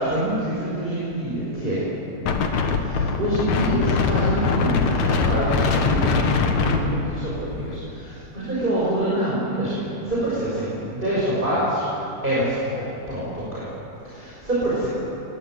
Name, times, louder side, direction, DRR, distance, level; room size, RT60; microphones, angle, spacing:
voice 1, 0.0-1.8 2.8-11.9 12.2-13.6 14.0-14.9, right 1 dB, 15° right, -8 dB, 6.1 m, -26 dB
Wind, 2.3-7.8, left 4 dB, 75° left, 2.9 m, -22 dB
21.0 x 19.5 x 9.3 m, 2.9 s
omnidirectional pair, 3.3 m